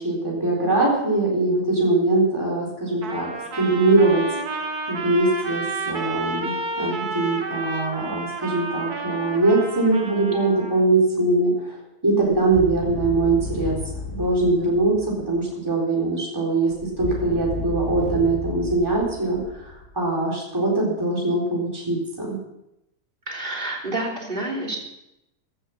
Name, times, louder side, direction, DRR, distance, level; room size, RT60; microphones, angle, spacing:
voice 1, 0.0-3.3 3.5-4.2 4.5-11.8 12.0-13.8 14.1-22.4, right 2 dB, 15° right, -4 dB, 4.0 m, -22 dB
Trumpet, 3.0-10.8, right 3 dB, 70° right, 2.2 m, -31 dB
sound 1, 12.2-15.5 16.7-20.0, left 3 dB, 40° left, 6.0 m, -33 dB
voice 2, 23.3-24.8, right 2 dB, 30° right, -1 dB, 3.6 m, -28 dB
16.0 x 11.0 x 5.9 m, 0.85 s
omnidirectional pair, 1.7 m